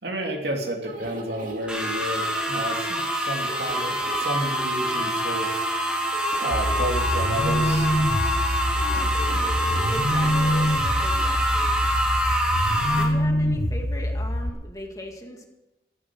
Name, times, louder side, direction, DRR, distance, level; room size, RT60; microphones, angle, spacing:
voice 1, 0.0-5.5 6.4-7.9, right 1 dB, 65° right, 2 dB, 2.8 m, -31 dB
sound 1, 0.8-11.4, right 1 dB, 45° right, 2.7 m, -38 dB
sound 2, 1.7-13.0, equal, 5° right, 2.9 m, -26 dB
sound 3, 6.5-14.5, equal, 75° left, 2.9 m, -25 dB
voice 2, 9.9-10.7 11.0-11.8 12.9-15.5, left 1 dB, 20° left, 2 dB, 2.1 m, -38 dB
14.5 x 12.5 x 6.3 m, 1.0 s
head